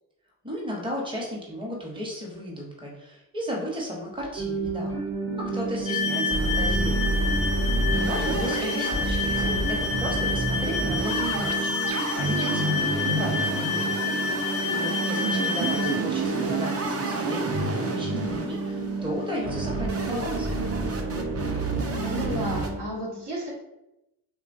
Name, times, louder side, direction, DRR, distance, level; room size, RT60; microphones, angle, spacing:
voice 1, 0.4-5.0 5.4-7.1 7.9-11.8 12.2-12.8 13.1-13.9 14.7-20.5, equal, 10° right, -2 dB, 0.9 m, -34 dB
sound 1, 4.2-5.1 5.4-5.5 5.8-5.9 6.3-22.7, right 2 dB, 30° right, 0.6 m, -29 dB
sound 2, 4.3-22.8, right 3 dB, 85° right, 0.8 m, -32 dB
sound 3, 5.9-16.0, left 5 dB, 15° left, 0.3 m, -29 dB
voice 2, 7.8-8.4 17.8-18.6 21.5-21.7 22.0-23.5, right 1 dB, 55° right, -3 dB, 1.0 m, -33 dB
2.9 x 2.2 x 2.6 m, 0.90 s
hypercardioid pair, 40°, 48 cm